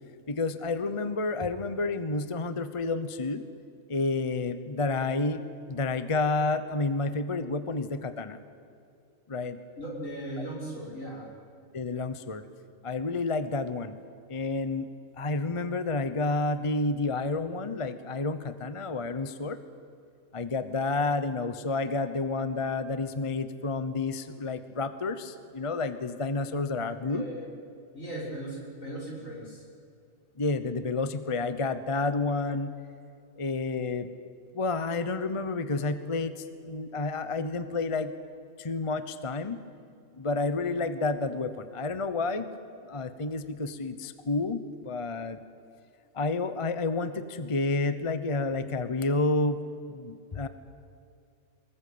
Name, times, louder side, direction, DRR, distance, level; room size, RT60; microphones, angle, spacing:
voice 1, 0.3-3.4 3.9-5.4 5.7-8.4 9.3-9.6 11.7-12.4 12.8-14.0 14.3-14.9 15.2-19.6 20.3-27.3 30.4-32.7 33.4-34.1 34.5-38.1 38.6-39.6 40.2-42.5 42.8-45.4 46.1-49.6 49.9-50.5, left 3 dB, 25° left, 11 dB, 0.9 m, -30 dB
voice 2, 9.8-11.3 27.0-27.5 27.9-29.6, right 1 dB, 75° left, -2 dB, 5.9 m, -38 dB
24.0 x 21.0 x 8.6 m, 2.5 s
omnidirectional pair, 1.4 m